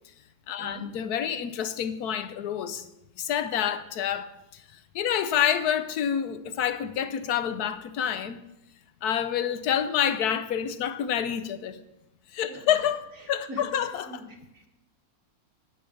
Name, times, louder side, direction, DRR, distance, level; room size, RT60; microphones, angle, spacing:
voice 1, 0.5-2.9 3.2-4.6 4.9-8.4 9.0-11.8 12.3-14.2, left 9 dB, 85° left, 1.3 m, -28 dB
voice 2, 13.2-14.7, right 1 dB, 60° right, 2.3 m, -43 dB
10.0 x 8.6 x 6.4 m
omnidirectional pair, 1.6 m